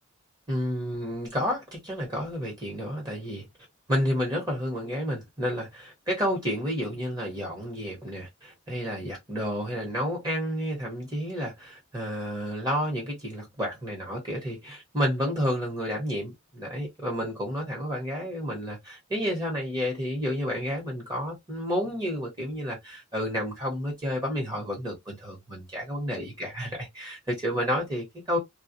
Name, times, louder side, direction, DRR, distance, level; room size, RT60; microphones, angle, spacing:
voice 1, 0.5-3.5 3.9-28.4, equal, 20° right, 1.1 m, -30 dB
2.3 x 2.1 x 2.6 m
head